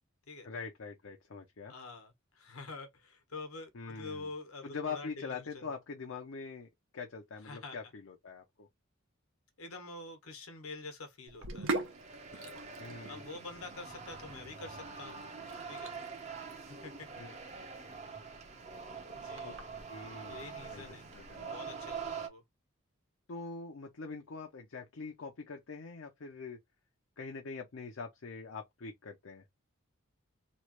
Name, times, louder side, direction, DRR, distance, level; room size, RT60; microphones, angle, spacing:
voice 1, 0.4-1.7 3.7-4.3 4.6-8.7 12.8-13.3 17.2-17.4 19.4-19.5 19.9-21.5 23.3-26.6 27.2-29.4, left 4 dB, 65° left, 0.6 m, -44 dB
voice 2, 1.7-5.7 7.4-7.8 9.6-11.7 12.3-12.6 13.1-15.2 15.7-15.9 16.6-17.1 19.1-19.6 20.3-21.1 21.4-22.4, left 3 dB, 90° left, 1.1 m, -47 dB
Sink (filling or washing), 11.3-22.1, right 2 dB, 70° right, 0.7 m, -44 dB
sound 1, 11.6-22.3, right 5 dB, 30° right, 0.7 m, -45 dB
3.1 x 2.4 x 3.0 m
head